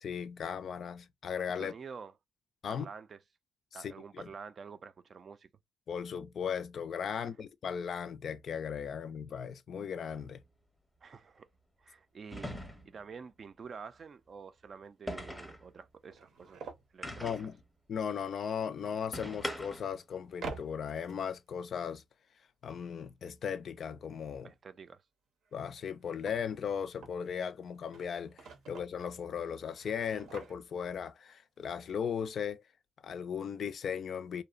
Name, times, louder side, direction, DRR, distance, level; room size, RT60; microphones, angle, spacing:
voice 1, 0.0-1.7 2.6-2.9 3.8-4.3 5.9-10.4 17.1-17.5 17.9-22.0 22.6-24.5 25.5-32.6 33.0-34.4, left 7 dB, 55° left, 0.3 m, -37 dB
voice 2, 1.6-2.1 2.7-3.2 3.7-5.5 7.1-7.3 11.0-11.5 11.8-12.6 12.9-16.6 16.9-17.4 24.4-25.0, right 5 dB, 45° right, 0.4 m, -48 dB
sound 1, 10.1-10.3 12.3-13.0 15.1-15.7 17.0-17.6 19.1-20.0, equal, 5° left, 0.7 m, -41 dB
sound 2, 13.0-13.1 13.6-13.7 14.8-14.9 15.1-15.2 15.8-16.9 19.0-19.1 20.3-21.5 25.4-27.3 27.7-29.0 29.6-31.0 31.3-31.4 31.6-31.8, right 5 dB, 75° right, 0.7 m, -48 dB
2.7 x 2.1 x 2.4 m
cardioid pair, 90°, 0 cm